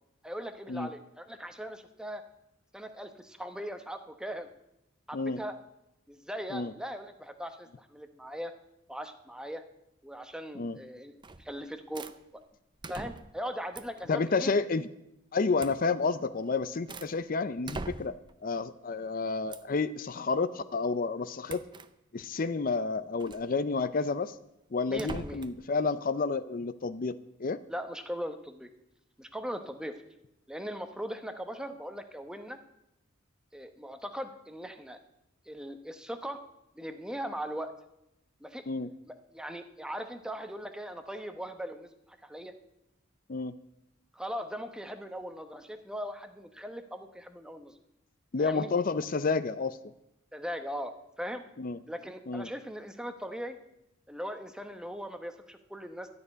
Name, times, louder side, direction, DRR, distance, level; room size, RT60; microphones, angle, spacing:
voice 1, 0.2-2.2 2.7-4.5 5.1-5.6 6.1-8.5 8.9-9.6 10.0-11.1 11.4-12.0 12.3-12.4 12.9-14.5 24.8-25.4 27.7-28.7 29.2-30.0 30.5-32.6 33.5-35.0 35.5-36.4 36.7-37.7 38.4-38.6 39.0-42.5 44.1-47.7 48.4-48.7 50.3-50.9 51.2-51.4 51.9-53.6 54.1-56.1, equal, 5° right, 7 dB, 0.9 m, -39 dB
sound 1, 11.2-11.5 11.9-12.2 12.8-13.4 13.7-14.1 15.6-15.8 16.4-17.2 17.6-18.3 19.5-19.8 21.5-21.9 23.2-23.5 24.9-25.6, right 3 dB, 20° right, 0.5 m, -42 dB
voice 2, 14.1-14.9 15.3-18.1 18.4-21.6 22.1-24.3 24.7-27.1 27.4-27.6 38.7-38.9 43.3-43.5 48.3-49.8 51.6-51.8 52.3-52.5, left 4 dB, 40° left, 13 dB, 0.5 m, -30 dB
13.0 x 6.8 x 9.7 m, 0.85 s
head